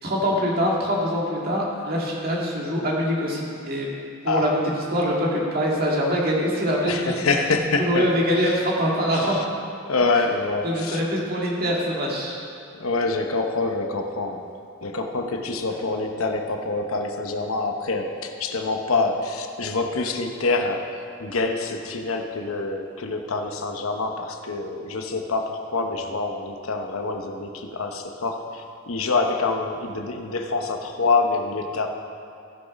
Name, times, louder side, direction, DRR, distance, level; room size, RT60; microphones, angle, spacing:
voice 1, 0.0-3.9 4.2-4.6 4.9-7.2 7.8-9.4 10.6-12.4, equal, 45° right, -3 dB, 2.0 m, -24 dB
voice 2, 6.9-8.1 8.4-8.6 9.1-9.4 9.9-11.0 12.7-14.5 14.8-31.9, left 3 dB, 90° left, 4 dB, 0.9 m, -26 dB
15.0 x 6.3 x 5.2 m, 2.4 s
head